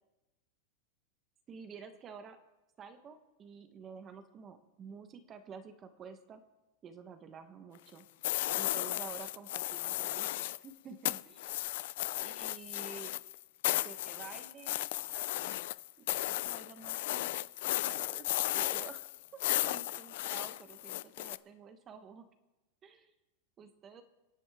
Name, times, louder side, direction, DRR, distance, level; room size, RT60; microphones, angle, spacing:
voice 1, 1.5-2.4 2.8-6.4 6.8-8.1 8.5-11.6 12.2-13.1 13.7-14.9 15.4-15.7 16.0-17.3 17.8-18.3 18.5-22.3 22.8-23.1 23.6-24.0, right 6 dB, 20° right, 9 dB, 1.0 m, -50 dB
sound 1, 8.2-10.7 11.0-21.4, left 16 dB, 60° left, 0.4 m, -35 dB
26.5 x 9.9 x 3.5 m, 1.0 s
supercardioid pair, 165°, 0 cm